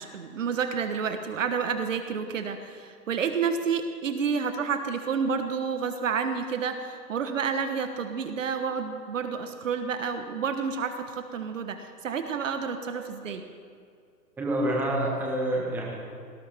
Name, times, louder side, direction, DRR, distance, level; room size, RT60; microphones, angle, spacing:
voice 1, 0.0-13.4, right 6 dB, 50° right, 7 dB, 1.3 m, -30 dB
voice 2, 14.4-15.9, right 1 dB, 5° right, -2 dB, 1.4 m, -27 dB
18.0 x 18.0 x 3.6 m, 2.3 s
hypercardioid pair, 150°, 49 cm